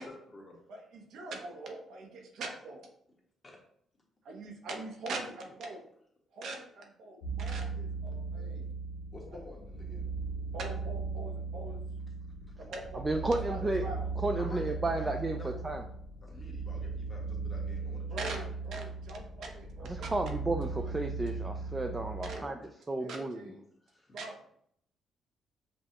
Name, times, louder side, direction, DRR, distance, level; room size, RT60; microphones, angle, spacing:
voice 1, 0.0-0.6 3.4-3.6 5.1-5.2 8.1-8.2 9.1-10.1 14.4-15.1 15.4-15.8 16.2-18.3 22.2-22.9 23.8-24.2, left 2 dB, 25° left, -2 dB, 1.3 m, -50 dB
voice 2, 0.7-2.8 4.2-5.8 6.3-8.7 10.5-11.8 12.6-14.1 18.1-20.4 22.1-22.5 23.0-23.6 24.1-24.5, right 2 dB, 75° right, 2 dB, 0.8 m, -42 dB
sound 1, 7.2-22.4, right 4 dB, 85° left, 0.7 m, -38 dB
voice 3, 12.9-13.8 14.2-15.4 15.6-15.8 19.9-22.6 22.9-23.5, right 2 dB, 20° right, 4 dB, 0.3 m, -32 dB
5.1 x 2.3 x 2.9 m, 0.68 s
cardioid pair, 90°, 0 cm